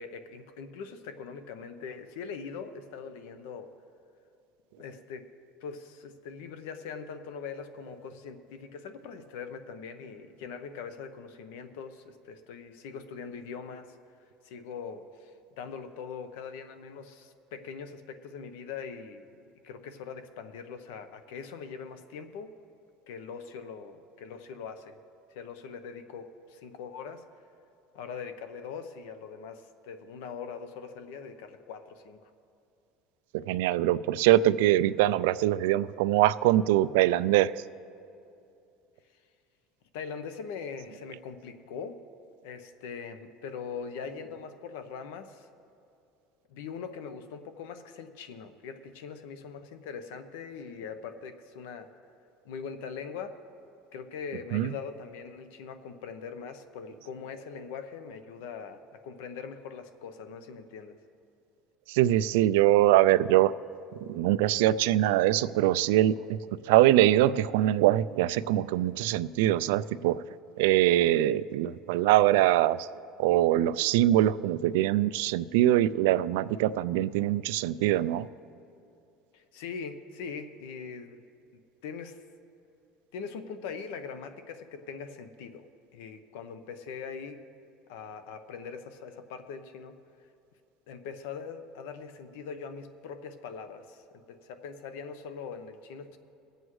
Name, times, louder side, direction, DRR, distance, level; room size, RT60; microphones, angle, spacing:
voice 1, 0.0-3.7 4.8-5.2 5.6-14.0 14.4-19.3 19.6-22.5 23.1-25.0 25.3-27.2 27.9-32.2 39.9-42.0 42.4-45.5 46.5-51.9 52.4-53.4 53.9-61.0 79.3-81.2 81.8-82.2 83.1-85.7 85.9-87.4 87.9-90.0 90.9-96.2, left 6 dB, 85° left, 9 dB, 0.8 m, -41 dB
voice 2, 33.5-37.5 54.5-54.7 61.9-63.5 64.1-66.4 66.7-70.2 70.6-72.9 73.2-78.3, right 14 dB, 90° right, 16 dB, 0.3 m, -23 dB
22.0 x 7.9 x 3.2 m, 2.6 s
cardioid pair, 165°, 0 cm